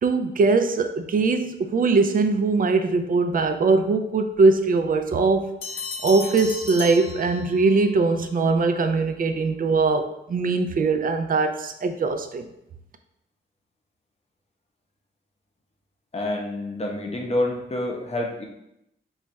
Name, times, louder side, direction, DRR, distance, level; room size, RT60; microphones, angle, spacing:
voice 1, 0.0-5.5 6.0-12.5, right 3 dB, 45° right, 8 dB, 0.4 m, -21 dB
sound 1, 5.6-7.8, left 4 dB, 85° left, 0.6 m, -35 dB
voice 2, 16.1-18.5, left 1 dB, 30° left, 1 dB, 0.7 m, -27 dB
3.1 x 2.3 x 4.0 m, 0.82 s
wide cardioid pair, 90°, 21 cm